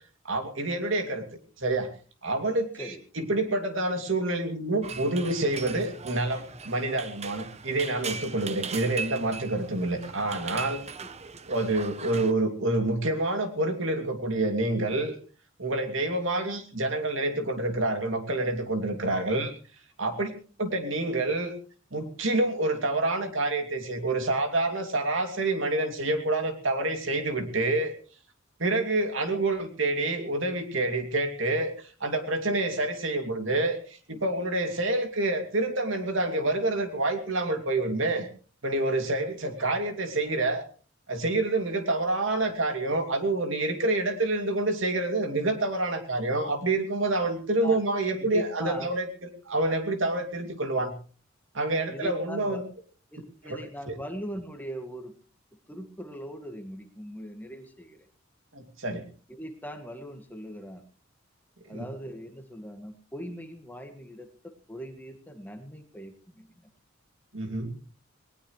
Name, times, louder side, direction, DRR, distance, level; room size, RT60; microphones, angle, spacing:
voice 1, 0.2-1.2 1.6-1.9 2.2-10.8 11.5-15.1 15.6-19.5 20.0-20.3 20.6-21.5 21.9-28.0 28.6-33.8 34.1-38.3 38.6-40.6 41.1-50.9 51.5-52.6 53.5-53.6 53.9-54.0 58.5-59.0 61.7-61.8 67.3-67.7, right 2 dB, 70° right, 5 dB, 2.7 m, -27 dB
sound 1, 4.8-12.3, right 5 dB, 35° right, 0.9 m, -39 dB
voice 2, 48.2-49.0 51.9-52.6 53.1-55.1 55.7-58.0 59.3-60.9 61.7-66.7, equal, 10° left, 6 dB, 1.8 m, -40 dB
19.5 x 19.0 x 3.3 m, 0.40 s
head